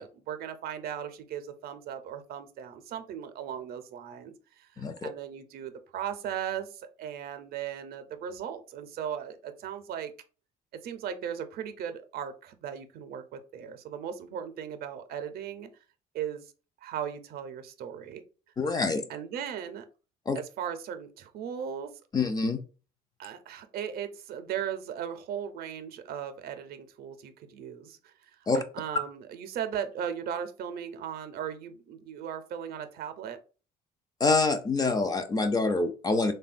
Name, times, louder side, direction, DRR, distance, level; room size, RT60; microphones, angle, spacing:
voice 1, 0.0-10.1 10.8-15.7 16.1-16.5 16.8-18.2 19.1-19.9 20.3-21.9 23.2-33.4, right 8 dB, 65° right, 9 dB, 0.5 m, -37 dB
voice 2, 4.8-5.1 18.6-19.0 20.3-20.4 22.1-22.6 28.5-28.6 34.2-36.3, left 3 dB, 25° left, 8 dB, 0.4 m, -26 dB
3.3 x 2.2 x 2.4 m, 0.35 s
cardioid pair, 110°, 17 cm